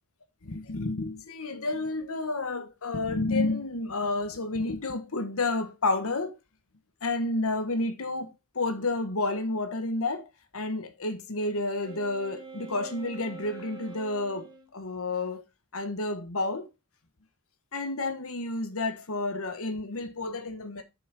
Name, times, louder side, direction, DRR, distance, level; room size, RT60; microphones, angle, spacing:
voice 1, 0.4-6.3 7.0-10.3 10.5-15.4 15.7-16.7 17.7-20.8, left 2 dB, 70° left, 1.2 m, -30 dB
Wind instrument woodwind instrument, 11.8-14.7, right 5 dB, 20° right, 1.7 m, -45 dB
7.1 x 6.3 x 4.7 m
head